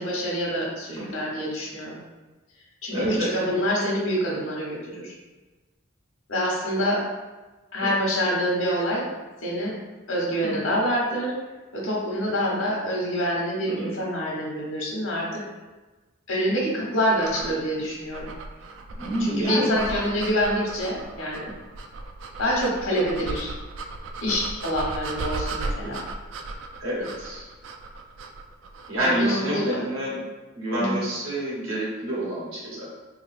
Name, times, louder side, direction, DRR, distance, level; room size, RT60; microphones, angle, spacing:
voice 1, 0.0-2.0 2.8-5.1 6.3-7.0 7.7-9.1 9.4-9.7 10.1-11.3 11.7-15.4 16.3-18.3 19.2-21.5 22.4-23.5 24.2-26.0 29.0-29.9 30.7-31.0, equal, 85° left, -3 dB, 1.0 m, -26 dB
voice 2, 2.9-3.3 7.8-7.9 10.4-10.7 13.7-13.9 19.0-19.8 26.8-27.4 28.9-30.2 30.5-32.9, right 1 dB, 85° right, -6 dB, 1.3 m, -27 dB
sound 1, 17.1-29.0, right 2 dB, 65° right, 0.3 m, -36 dB
3.5 x 3.1 x 2.4 m, 1.2 s
head